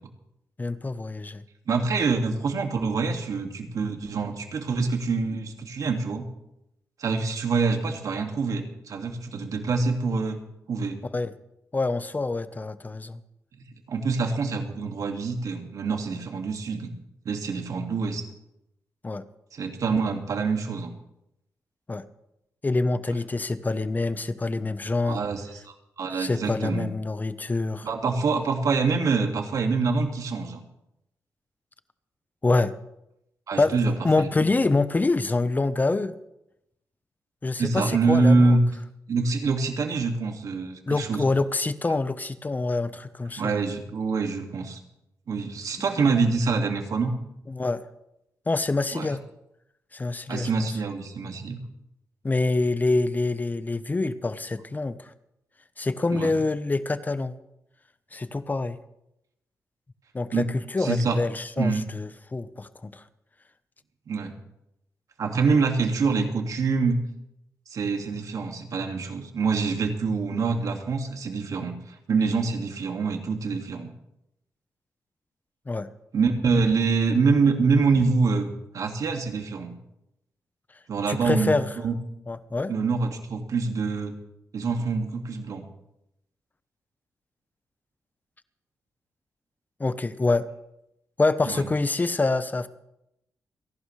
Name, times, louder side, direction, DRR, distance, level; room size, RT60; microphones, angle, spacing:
voice 1, 0.6-1.4 11.1-11.3 11.7-13.2 19.0-19.2 21.9-22.0 22.6-25.2 26.1-27.9 32.4-32.7 33.6-36.1 37.4-38.6 40.9-43.7 47.5-47.9 48.5-49.2 49.9-50.5 52.2-55.1 55.8-57.3 58.1-58.8 60.1-63.0 75.7-75.9 81.1-81.7 82.3-82.7 89.8-90.5 91.2-92.7, left 3 dB, 30° left, 13 dB, 1.0 m, -26 dB
voice 2, 1.7-6.3 7.0-10.4 10.7-11.0 13.9-16.9 17.3-18.2 19.5-20.9 25.0-26.9 27.8-30.6 33.5-34.5 37.6-38.6 39.1-41.2 43.4-44.8 45.3-47.1 48.9-49.1 50.3-51.6 56.1-56.3 60.3-60.5 60.8-61.2 61.6-61.9 64.1-64.3 65.2-67.0 67.7-71.8 72.1-73.9 76.1-78.5 78.7-79.8 80.9-81.9 82.7-84.1 84.5-85.6 91.5-91.7, right 4 dB, 65° right, 4 dB, 2.1 m, -25 dB
29.0 x 11.5 x 3.3 m, 0.83 s
cardioid pair, 65°, 6 cm